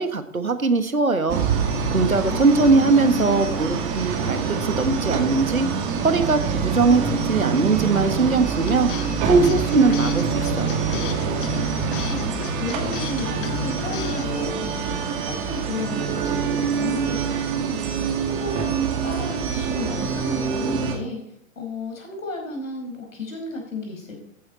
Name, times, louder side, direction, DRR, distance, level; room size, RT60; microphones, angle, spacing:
voice 1, 0.0-1.5 1.9-5.7 6.0-8.9 9.2-10.8, right 3 dB, 85° right, 10 dB, 1.5 m, -21 dB
sound 1, 1.3-21.0, right 6 dB, 40° right, 2.3 m, -25 dB
voice 2, 2.3-3.5 12.1-12.2 12.6-17.8 18.3-21.2 21.5-24.2, left 2 dB, 70° left, 2 dB, 5.0 m, -33 dB
sound 2, 8.7-14.4, left 8 dB, 40° left, 1.1 m, -33 dB
14.0 x 9.7 x 4.2 m, 0.74 s
figure-of-eight pair, 105°, 41 cm